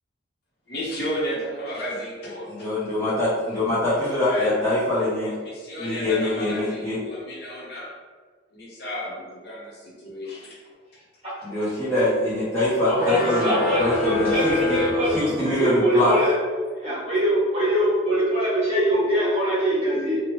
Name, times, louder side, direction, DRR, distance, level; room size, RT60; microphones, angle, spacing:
voice 1, 0.7-2.7 4.2-4.5 5.4-7.9 8.5-10.6, equal, 55° left, -5 dB, 0.8 m, -33 dB
voice 2, 2.5-5.3 5.8-7.0 11.4-13.5 13.8-14.8 15.1-16.1, left 1 dB, 15° left, -13 dB, 0.6 m, -23 dB
sound 1, 12.9-15.8, left 2 dB, 35° left, 1.1 m, -26 dB
voice 3, 12.9-16.3 16.8-20.2, equal, 30° right, -8 dB, 1.1 m, -23 dB
2.9 x 2.1 x 2.9 m, 1.5 s
head